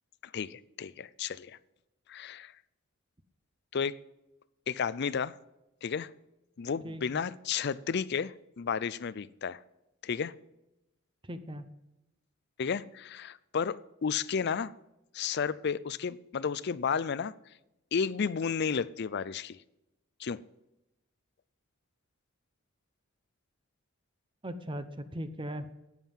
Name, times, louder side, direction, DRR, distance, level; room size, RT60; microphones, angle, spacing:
voice 1, 0.3-1.6 2.1-2.5 3.7-4.0 4.7-5.4 5.8-6.1 6.6-9.6 10.0-10.3 12.6-14.7 15.1-17.3 17.9-19.6 20.2-20.4, left 6 dB, 55° left, 18 dB, 0.5 m, -32 dB
voice 2, 6.8-7.2 11.2-11.7 24.4-25.7, equal, 25° right, 10 dB, 0.9 m, -39 dB
13.0 x 9.2 x 5.6 m, 0.93 s
head